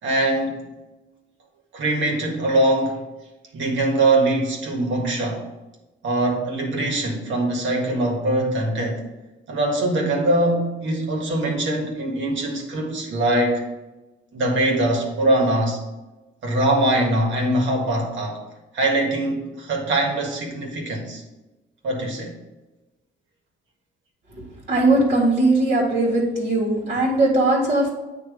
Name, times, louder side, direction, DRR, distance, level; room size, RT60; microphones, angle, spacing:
voice 1, 0.0-0.7 1.7-3.0 3.5-5.4 6.0-9.0 9.5-13.6 14.3-15.8 16.4-18.4 18.7-21.2 21.8-22.3, right 1 dB, 75° right, 1 dB, 1.8 m, -22 dB
voice 2, 24.3-27.9, right 2 dB, 50° right, -4 dB, 2.1 m, -20 dB
8.8 x 3.1 x 4.9 m, 1.1 s
cardioid pair, 90°, 20 cm